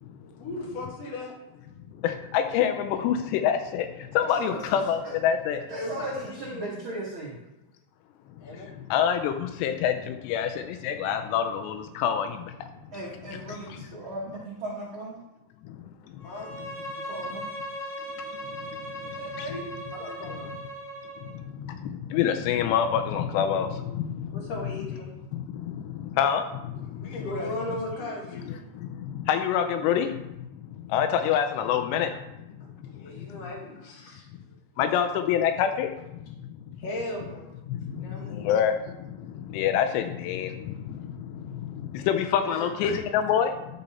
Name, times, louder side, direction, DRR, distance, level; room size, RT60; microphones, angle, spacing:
voice 1, 0.4-1.3 5.8-6.7 8.4-8.7 16.2-16.5 19.0-19.6 19.9-20.6 24.3-25.1 26.9-28.6 31.7-31.8 32.9-34.3 36.8-37.5 38.0-38.5 42.0-42.1 42.3-43.0, left 1 dB, 55° left, -1 dB, 1.8 m, -37 dB
voice 2, 2.0-5.7 8.5-12.7 13.5-13.9 15.6-15.8 16.1-16.3 18.5-19.5 20.3-20.4 21.2-24.9 25.3-27.3 28.5-30.4 30.6-32.2 32.9-33.5 34.8-36.4 36.7-36.8 37.7-43.8, left 9 dB, 85° left, 7 dB, 2.7 m, -27 dB
voice 3, 4.2-5.1 5.7-7.3 12.9-15.2 16.9-17.4, right 1 dB, 80° right, -6 dB, 1.1 m, -37 dB
Bowed string instrument, 16.2-21.3, equal, 15° left, 2.4 m, -38 dB
12.0 x 4.1 x 4.2 m, 0.92 s
omnidirectional pair, 4.9 m